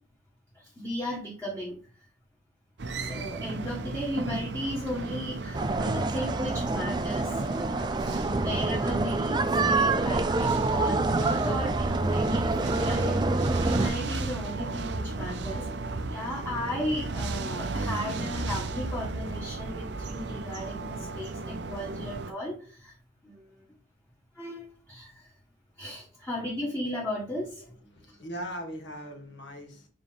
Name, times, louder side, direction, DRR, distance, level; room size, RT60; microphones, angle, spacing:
voice 1, 0.5-1.8 3.0-7.4 7.9-15.7 16.0-23.0 23.2-23.7 24.3-25.3 25.8-27.7 28.0-28.2, left 1 dB, 10° left, -4 dB, 1.4 m, -36 dB
sound 1, 2.8-22.3, right 3 dB, 65° right, 0.6 m, -34 dB
sound 2, 5.5-13.9, right 2 dB, 25° right, 0.4 m, -27 dB
voice 2, 27.6-29.9, equal, 70° left, 2 dB, 1.7 m, -40 dB
7.0 x 4.0 x 3.5 m, 0.40 s
head